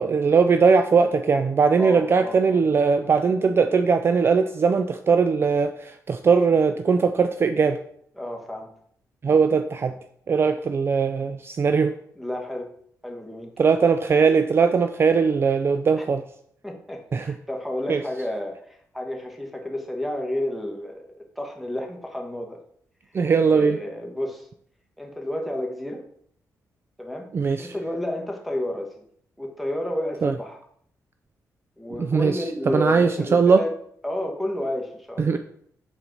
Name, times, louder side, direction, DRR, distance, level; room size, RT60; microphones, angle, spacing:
voice 1, 0.0-7.8 9.2-9.9 10.3-11.9 13.6-16.2 17.1-17.3 17.9-18.0 23.1-23.8 27.3-27.7 30.2-30.3 32.0-33.6 35.2-35.4, right 5 dB, 40° right, 8 dB, 0.3 m, -20 dB
voice 2, 1.8-2.6 8.1-8.7 12.2-12.7 13.0-13.5 16.0-16.1 16.6-22.6 23.5-24.5 25.0-26.0 27.0-27.3 27.6-29.0 29.4-30.6 31.8-33.7 34.0-35.4, left 1 dB, ahead, 2 dB, 1.2 m, -31 dB
6.0 x 4.4 x 3.9 m, 0.66 s
cardioid pair, 100°, 6 cm